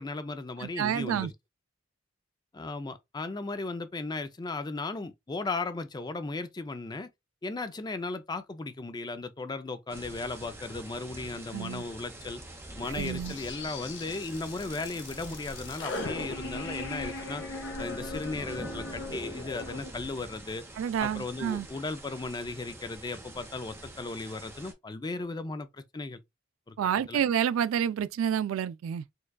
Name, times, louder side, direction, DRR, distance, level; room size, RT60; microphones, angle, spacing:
voice 1, 0.0-1.3 2.5-7.1 7.4-12.4 12.8-17.4 17.8-20.6 21.0-26.2 26.7-26.8 27.1-27.2, left 3 dB, 20° left, 0.4 m, -36 dB
voice 2, 0.6-1.3 11.5-11.8 12.9-13.4 20.8-21.7 26.8-29.0, right 9 dB, 80° right, 0.3 m, -29 dB
sound 1, 9.9-24.7, right 1 dB, 15° right, 0.8 m, -45 dB
sound 2, 12.9-19.9, left 2 dB, 60° left, 0.9 m, -39 dB
4.6 x 2.3 x 2.2 m
head